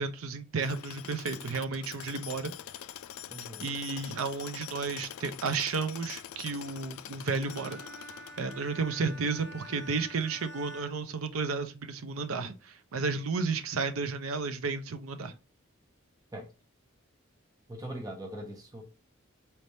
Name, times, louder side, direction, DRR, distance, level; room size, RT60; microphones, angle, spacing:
voice 1, 0.0-2.5 3.6-7.8 8.4-15.3, right 4 dB, 85° right, 0.6 m, -32 dB
Tools, 0.6-8.9, left 10 dB, 90° left, 0.3 m, -44 dB
voice 2, 3.3-3.7 16.3-16.5 17.7-18.8, right 1 dB, 15° right, 0.9 m, -41 dB
Bowed string instrument, 7.4-11.9, equal, 55° right, 1.3 m, -48 dB
4.3 x 3.3 x 2.7 m
head